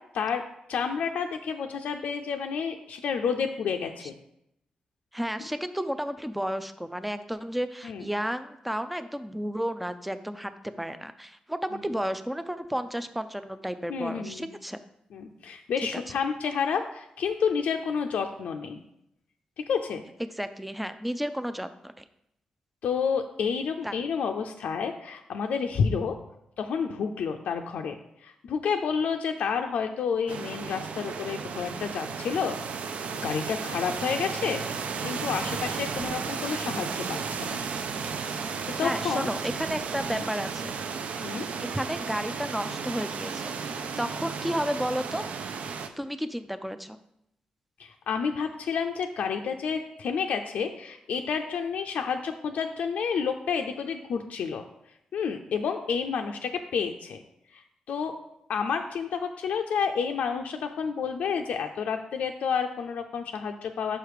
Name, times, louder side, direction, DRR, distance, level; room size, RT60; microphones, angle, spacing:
voice 1, 0.7-4.1 7.8-8.0 13.9-14.5 15.1-18.8 19.6-20.0 22.8-26.2 26.6-28.0 28.2-32.6 33.2-37.6 38.8-39.3 40.1-40.2 41.2-41.5 47.8-54.6 55.1-57.2 57.5-57.6 57.9-58.2 58.5-64.0, left 6 dB, 80° left, 4 dB, 0.4 m, -30 dB
voice 2, 5.1-14.8 15.9-16.0 20.3-22.0 23.8-23.9 38.8-40.8 41.6-45.3 46.0-47.0, equal, 5° right, 11 dB, 0.3 m, -32 dB
sound 1, 30.3-45.9, right 5 dB, 65° right, 0.5 m, -34 dB
5.6 x 5.0 x 4.7 m, 0.80 s
wide cardioid pair, 120°, 2 cm